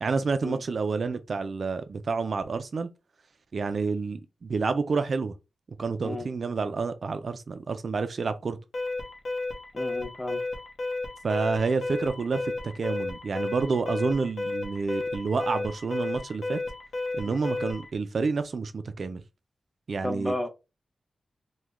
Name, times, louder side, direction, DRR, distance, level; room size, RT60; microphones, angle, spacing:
voice 1, 0.0-2.9 3.5-5.3 5.8-8.6 11.2-16.6 17.1-19.2 19.9-20.3, right 4 dB, 50° right, 0.3 m, -29 dB
Alarm, 8.7-17.9, left 2 dB, 60° left, 0.8 m, -33 dB
voice 2, 9.7-10.4 17.2-17.4 20.0-20.5, left 1 dB, 10° left, 0.6 m, -33 dB
3.0 x 2.1 x 3.4 m
wide cardioid pair, 150°, 0 cm